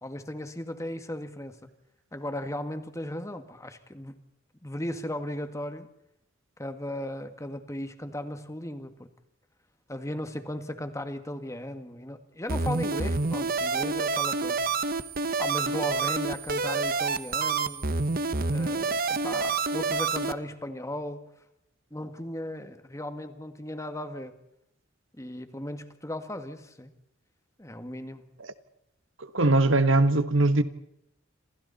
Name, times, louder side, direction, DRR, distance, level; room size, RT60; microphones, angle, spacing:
voice 1, 0.0-1.6 2.1-4.2 4.6-5.9 6.6-9.1 9.9-14.7 15.4-17.9 18.5-21.3 21.9-24.4 25.1-26.9 27.6-28.3, left 1 dB, 15° left, 1.9 m, -36 dB
sound 1, 12.5-20.3, right 4 dB, 50° right, 1.1 m, -28 dB
voice 2, 29.3-30.6, right 2 dB, 75° right, 1.5 m, -21 dB
29.0 x 27.0 x 4.3 m
head